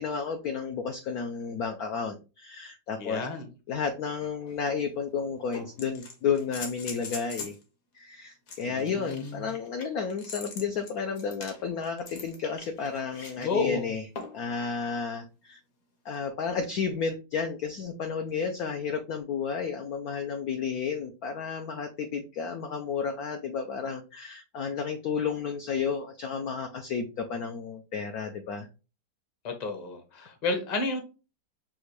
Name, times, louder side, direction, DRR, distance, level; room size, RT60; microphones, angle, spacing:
voice 1, 0.0-3.3 3.7-7.5 7.9-14.0 14.3-15.6 16.0-28.7, left 6 dB, 70° left, 5 dB, 0.9 m, -32 dB
voice 2, 3.0-3.5 8.7-9.4 13.4-13.9 29.4-31.0, left 4 dB, 30° left, 4 dB, 0.8 m, -31 dB
sound 1, 4.5-4.6 5.5-7.6 8.5-13.5 14.2-14.5 16.1-16.2, left 4 dB, 55° left, 1.3 m, -42 dB
6.2 x 2.5 x 3.1 m, 0.31 s
omnidirectional pair, 2.1 m